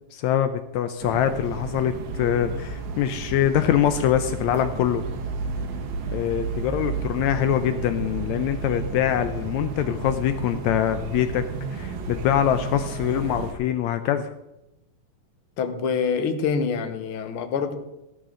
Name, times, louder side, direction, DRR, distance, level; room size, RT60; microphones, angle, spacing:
voice 1, 0.1-5.0 6.1-11.5 11.7-14.3, left 10 dB, 80° left, 9 dB, 1.9 m, -24 dB
sound 1, 1.0-13.5, right 4 dB, 75° right, 2.7 m, -32 dB
voice 2, 15.6-17.7, left 5 dB, 60° left, 8 dB, 1.7 m, -26 dB
14.0 x 12.0 x 3.8 m, 0.93 s
omnidirectional pair, 3.4 m